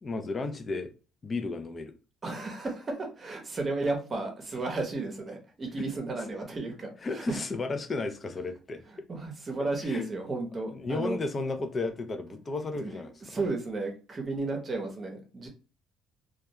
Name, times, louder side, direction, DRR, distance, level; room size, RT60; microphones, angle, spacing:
voice 1, 0.0-0.9 1.2-1.9 5.8-5.9 7.0-8.8 9.8-10.1 10.7-13.4, left 3 dB, 30° left, 0.4 m, -33 dB
voice 2, 2.2-7.4 9.1-11.2 12.8-12.9 13.3-15.5, right 3 dB, 25° right, 0.8 m, -33 dB
2.3 x 2.1 x 2.8 m
cardioid pair, 125°, 0 cm